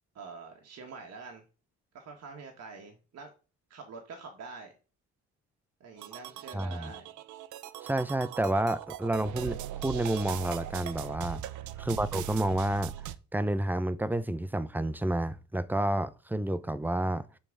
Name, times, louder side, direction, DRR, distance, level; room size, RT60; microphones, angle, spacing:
voice 1, 0.1-1.4 1.9-3.3 3.7-4.7 5.8-7.1 11.8-12.0, right 4 dB, 55° right, 1.5 m, -46 dB
sound 1, 6.0-13.2, right 12 dB, 75° right, 0.7 m, -40 dB
voice 2, 6.5-6.9 7.8-11.4 11.8-12.9 13.3-17.3, right 1 dB, 5° right, 0.6 m, -30 dB
8.8 x 3.6 x 6.5 m
cardioid pair, 90°, 30 cm